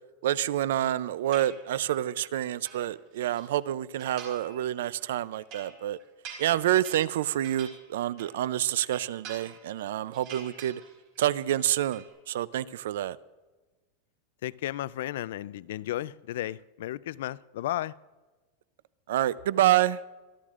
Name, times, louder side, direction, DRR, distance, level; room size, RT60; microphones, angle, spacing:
voice 1, 0.2-6.0 6.4-10.8 11.2-13.2 19.1-20.0, right 12 dB, 75° right, 0.4 m, -28 dB
sound 1, 1.3-2.0 2.4-3.5 4.0-4.6 4.9-8.5 8.8-9.8 10.1-11.2 11.5-12.1, right 6 dB, 40° right, 4.3 m, -47 dB
voice 2, 14.4-17.9, left 14 dB, 70° left, 0.4 m, -34 dB
25.5 x 13.0 x 2.5 m
supercardioid pair, 175°, 0 cm